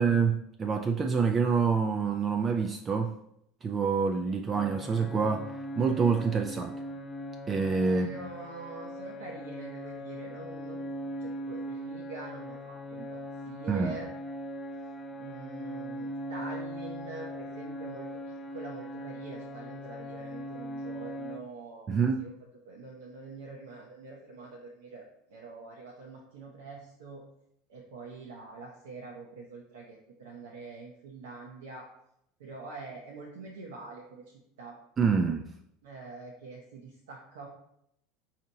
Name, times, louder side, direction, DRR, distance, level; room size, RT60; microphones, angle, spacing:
voice 1, 0.0-3.2 3.6-5.5 5.8-6.8 7.5-8.1 13.7-14.0 21.9-22.3 35.0-35.4, right 5 dB, 30° right, 4 dB, 0.3 m, -27 dB
sound 1, 4.5-21.4, equal, 25° left, 0.5 m, -40 dB
voice 2, 7.9-13.2 13.4-14.1 15.2-22.3 22.6-25.0 25.3-27.2 27.7-31.9 32.4-34.2 34.6-34.7 35.8-37.5, right 3 dB, 80° right, -1 dB, 0.6 m, -45 dB
4.9 x 2.7 x 2.8 m, 0.75 s
hypercardioid pair, 85°, 0 cm